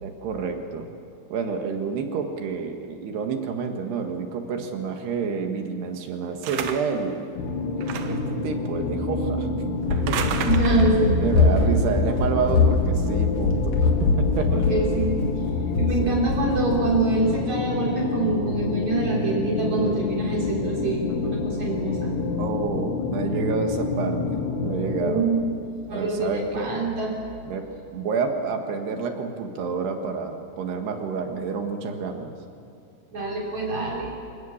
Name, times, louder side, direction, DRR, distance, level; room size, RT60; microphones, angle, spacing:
voice 1, 0.0-0.9 1.3-7.3 8.1-9.5 9.9-10.8 11.2-14.6 16.0-16.2 22.4-25.3 25.9-26.8 27.4-32.3, right 5 dB, 65° right, 4 dB, 3.3 m, -29 dB
sound 1, 6.4-7.0 7.8-8.3 9.9-11.0, right 7 dB, 85° right, 2.0 m, -31 dB
sound 2, 7.4-25.2, left 3 dB, 65° left, 3.2 m, -28 dB
Run, 9.8-16.8, left 3 dB, 45° left, 2.8 m, -23 dB
voice 2, 10.4-11.2 14.5-15.2 15.8-22.1 25.0-25.6 25.9-27.2 33.1-34.1, right 2 dB, 40° right, -2 dB, 4.5 m, -25 dB
28.0 x 18.5 x 7.3 m, 2.6 s
omnidirectional pair, 5.9 m